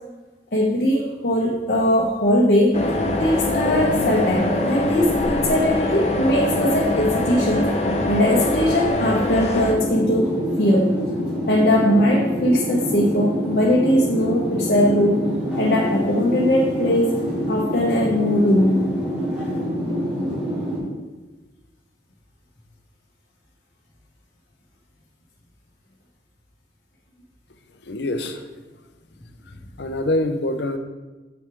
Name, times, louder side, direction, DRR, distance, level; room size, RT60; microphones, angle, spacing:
voice 1, 0.5-2.8 3.2-7.7 8.1-11.0 11.5-15.3 15.6-17.2 17.5-18.9, left 1 dB, 55° left, -4 dB, 1.1 m, -20 dB
sound 1, 2.7-9.7, left 1 dB, 35° left, 0.8 m, -23 dB
sound 2, 9.6-20.8, equal, 5° right, 2.3 m, -26 dB
voice 2, 27.8-28.4 29.8-30.8, left 1 dB, 75° left, 7 dB, 0.7 m, -24 dB
8.0 x 6.3 x 3.5 m, 1.2 s
head